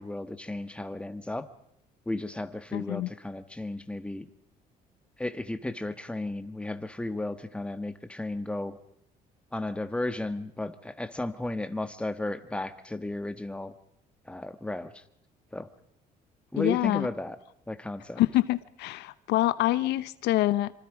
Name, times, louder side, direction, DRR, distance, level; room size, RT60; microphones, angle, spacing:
voice 1, 0.0-1.5 2.0-4.3 5.2-8.8 9.5-13.7 14.2-15.0 15.5-15.7 16.5-17.4 17.7-18.2, left 2 dB, 5° left, 10 dB, 1.6 m, -34 dB
voice 2, 2.7-3.1 16.6-17.1 18.2-20.7, left 16 dB, 85° left, 16 dB, 0.9 m, -26 dB
26.5 x 25.0 x 5.0 m, 0.71 s
cardioid pair, 110°, 17 cm